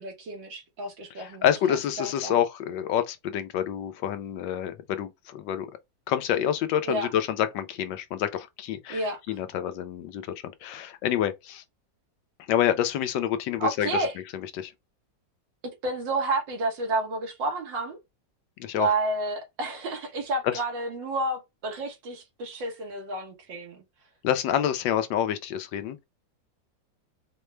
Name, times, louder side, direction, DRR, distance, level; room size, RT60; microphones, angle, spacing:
voice 1, 0.0-2.4 6.9-7.1 8.9-9.2 13.6-14.1 15.8-18.0 18.7-23.8, right 2 dB, 85° right, 2.0 m, -30 dB
voice 2, 1.2-5.7 6.1-11.6 12.5-13.9 14.3-14.7 18.6-18.9 20.4-20.6 24.2-26.0, left 10 dB, 85° left, 1.4 m, -28 dB
4.5 x 2.2 x 3.1 m
omnidirectional pair, 2.0 m